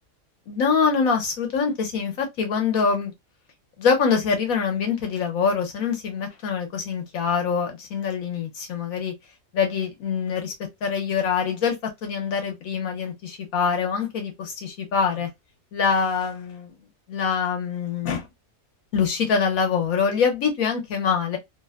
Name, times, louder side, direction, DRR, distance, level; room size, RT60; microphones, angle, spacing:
voice 1, 0.5-3.1 3.8-9.1 9.5-10.5 10.8-11.7 12.0-15.3 15.7-16.7 17.1-18.3 18.9-21.4, left 6 dB, 80° left, 1.3 m, -24 dB
3.0 x 2.1 x 2.3 m
omnidirectional pair, 1.4 m